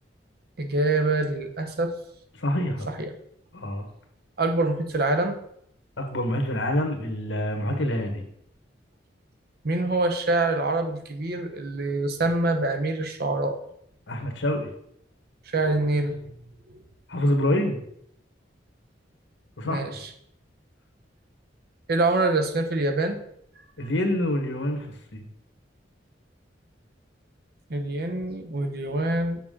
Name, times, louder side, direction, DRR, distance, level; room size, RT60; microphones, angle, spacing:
voice 1, 0.6-2.0 2.9-3.1 4.4-5.4 7.7-7.9 9.6-13.6 15.5-16.2 19.6-20.1 21.9-23.2 27.7-29.4, right 2 dB, 55° right, 6 dB, 0.8 m, -25 dB
voice 2, 2.3-2.9 3.5-3.8 6.0-8.3 14.1-14.7 17.1-17.8 19.6-19.9 23.8-24.9 25.1-25.2, left 1 dB, 85° left, 4 dB, 1.3 m, -26 dB
7.1 x 5.9 x 3.7 m, 0.72 s
head